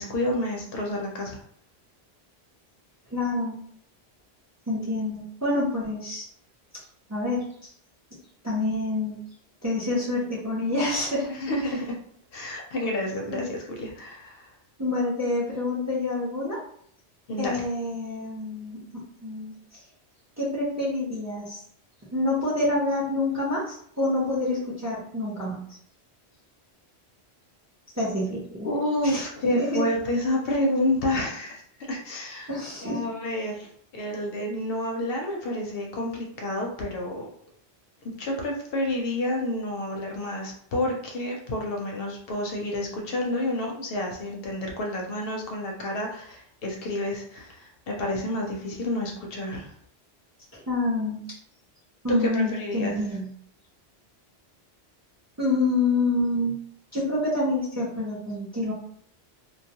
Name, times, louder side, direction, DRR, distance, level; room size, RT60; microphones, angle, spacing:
voice 1, 0.0-1.4 11.3-11.9 12.3-14.5 17.3-17.6 28.6-31.6 31.9-32.5 32.8-37.3 38.0-49.7 52.1-53.0, left 1 dB, 70° left, 0 dB, 0.7 m, -29 dB
voice 2, 3.1-3.6 4.7-6.3 7.1-7.7 8.4-9.2 9.6-11.3 13.3-13.5 14.8-16.6 17.4-18.8 19.2-19.5 20.4-21.6 22.1-25.6 27.9-28.7 29.0-29.3 29.5-29.8 32.5-33.0 50.5-51.4 52.0-53.3 55.4-56.6 56.9-58.7, left 2 dB, 20° right, -6 dB, 0.5 m, -27 dB
2.2 x 2.1 x 2.7 m, 0.64 s
omnidirectional pair, 1.1 m